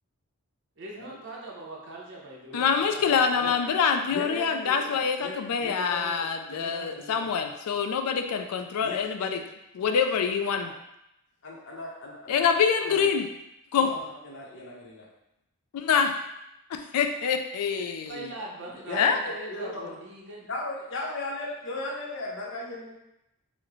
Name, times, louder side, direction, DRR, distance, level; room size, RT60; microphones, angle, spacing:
voice 1, 0.8-3.6 18.0-20.5, right 2 dB, 55° right, -3 dB, 0.8 m, -41 dB
voice 2, 2.5-9.4 9.8-10.7 12.3-13.3 13.7-13.9 15.7-16.3 16.7-18.3 19.0-19.2, left 6 dB, 85° left, 7 dB, 0.3 m, -25 dB
voice 3, 4.1-7.3 8.8-9.3 11.4-13.1 13.8-14.0 14.2-15.1 18.9-20.0 20.5-22.9, left 2 dB, 55° left, -3 dB, 0.7 m, -37 dB
3.0 x 2.1 x 3.7 m, 0.86 s
head